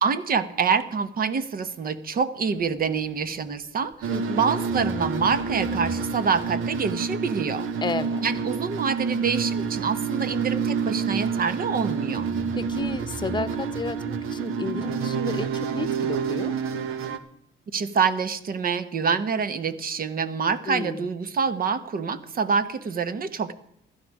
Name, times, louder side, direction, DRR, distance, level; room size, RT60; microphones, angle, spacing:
voice 1, 0.0-4.1 4.4-7.7 8.2-12.3 17.7-23.5, right 5 dB, 45° right, 13 dB, 1.3 m, -26 dB
sound 1, 3.4-4.3 4.7-11.8 12.2-16.2, right 1 dB, 20° right, 7.7 m, -45 dB
sound 2, 4.0-17.2, right 6 dB, 80° right, 1.4 m, -28 dB
voice 2, 4.1-4.4 7.8-8.2 12.6-16.5 20.7-21.1, left 3 dB, 20° left, 13 dB, 1.0 m, -32 dB
16.0 x 13.0 x 4.9 m, 0.75 s
cardioid pair, 110°, 21 cm